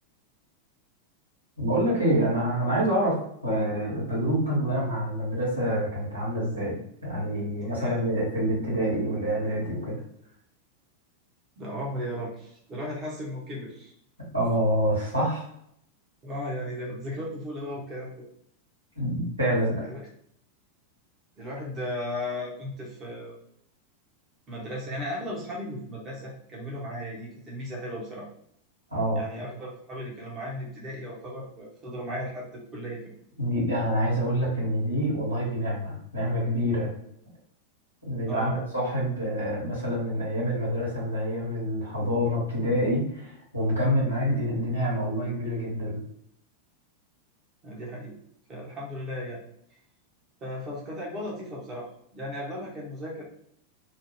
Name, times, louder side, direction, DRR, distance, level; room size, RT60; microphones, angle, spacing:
voice 1, 1.6-6.7 7.0-10.0 14.2-15.5 19.0-19.8 28.9-29.2 33.4-36.9 38.0-46.0, equal, 85° right, -7 dB, 1.3 m, -27 dB
voice 2, 7.6-8.0 11.6-13.9 16.2-18.3 19.5-20.1 21.4-23.4 24.5-28.3 29.1-33.0 38.3-38.7 47.6-48.1 48.5-49.4 50.4-53.2, left 1 dB, 25° right, -3 dB, 0.7 m, -36 dB
2.7 x 2.0 x 3.0 m, 0.70 s
figure-of-eight pair, 90°, 0 cm